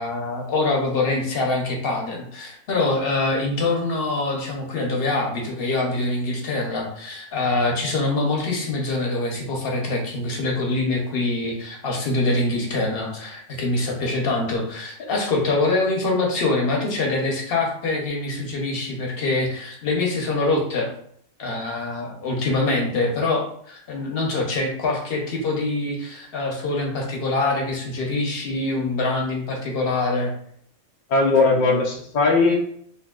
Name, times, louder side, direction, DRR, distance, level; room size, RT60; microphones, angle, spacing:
voice 1, 0.0-20.9 21.4-30.3, left 2 dB, 55° left, 0 dB, 0.8 m, -24 dB
voice 2, 31.1-32.5, left 3 dB, 70° left, 0 dB, 0.4 m, -18 dB
3.5 x 2.6 x 2.3 m, 0.64 s
omnidirectional pair, 1.5 m